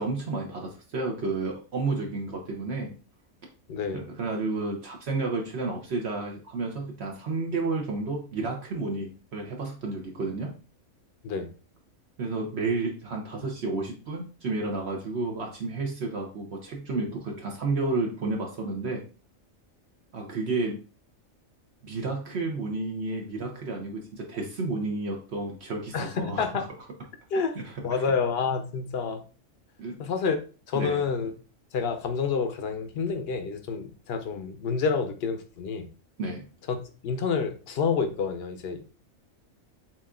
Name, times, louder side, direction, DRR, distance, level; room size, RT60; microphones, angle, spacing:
voice 1, 0.0-2.9 3.9-10.5 12.2-19.0 20.1-20.8 21.8-26.7 27.5-28.0 29.8-30.0 30.7-31.0 36.2-36.4, right 3 dB, 60° right, 1 dB, 0.9 m, -31 dB
voice 2, 3.7-4.0 11.2-11.5 25.9-26.7 27.3-27.6 27.8-29.2 30.0-30.4 30.7-31.3 31.7-35.9 36.7-36.8 37.0-38.8, left 5 dB, 55° left, 7 dB, 0.8 m, -28 dB
7.1 x 2.5 x 2.4 m, 0.36 s
omnidirectional pair, 1.4 m